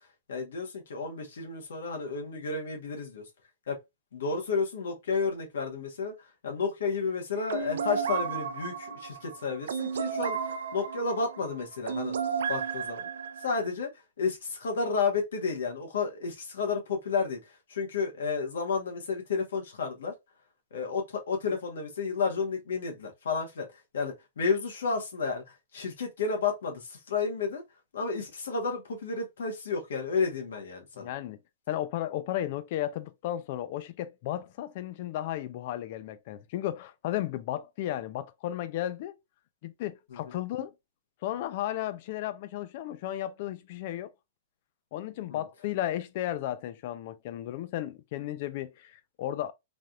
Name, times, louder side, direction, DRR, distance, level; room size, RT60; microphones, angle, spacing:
voice 1, 0.3-3.2 3.7-3.8 4.1-6.1 6.4-10.4 10.7-12.2 12.5-13.1 13.4-13.9 14.2-17.4 17.7-20.1 20.7-23.7 23.9-27.6 27.9-31.1 40.1-40.2 45.3-45.4, left 4 dB, 85° left, 1.1 m, -31 dB
sound 1, 7.5-13.7, right 7 dB, 80° right, 0.4 m, -33 dB
voice 2, 31.0-31.4 31.7-39.2 39.6-40.7 41.2-44.1 44.9-49.5, left 13 dB, 40° left, 0.3 m, -34 dB
3.3 x 2.3 x 2.6 m
hypercardioid pair, 170°, 0 cm